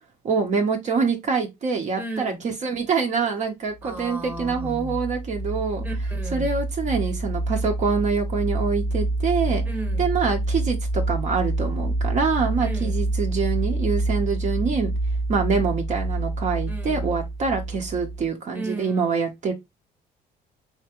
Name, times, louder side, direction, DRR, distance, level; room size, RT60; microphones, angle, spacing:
voice 1, 0.2-5.8 6.3-9.6 10.0-14.9 15.3-19.5, right 5 dB, 45° right, 0.8 m, -25 dB
voice 2, 1.9-2.4 3.8-5.0 5.8-6.5 9.6-10.1 12.6-13.0 16.7-17.2 18.5-19.3, right 2 dB, 10° right, 1.0 m, -35 dB
sound 1, 3.8-18.3, right 2 dB, 30° left, 0.4 m, -27 dB
3.4 x 2.9 x 2.9 m
cardioid pair, 110°, 17 cm